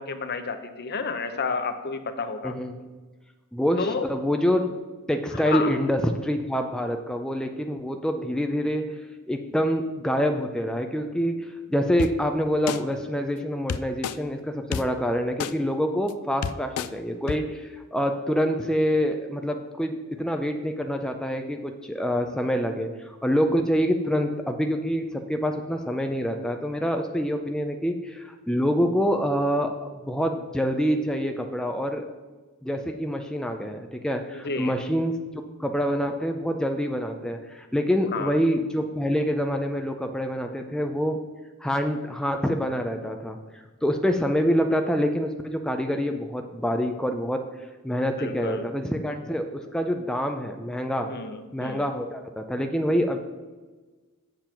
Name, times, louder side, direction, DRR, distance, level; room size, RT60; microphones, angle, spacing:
voice 1, 0.0-2.5 3.8-4.1 5.3-5.8 34.3-34.8 38.1-38.4 48.0-48.7 51.1-51.9, left 4 dB, 45° left, 9 dB, 0.7 m, -31 dB
voice 2, 2.4-2.7 3.5-4.8 5.1-32.1 32.6-35.2 35.6-41.2 41.6-43.4 43.8-47.4 47.8-51.1 51.5-53.2, equal, 5° left, 4 dB, 0.4 m, -26 dB
sound 1, 12.0-12.1 12.7-12.8 13.7-14.2 14.7-14.8 15.4-15.5 16.1-16.2 16.4-16.9 17.3-17.4, left 7 dB, 90° left, 0.4 m, -28 dB
7.7 x 6.8 x 5.8 m, 1.3 s
head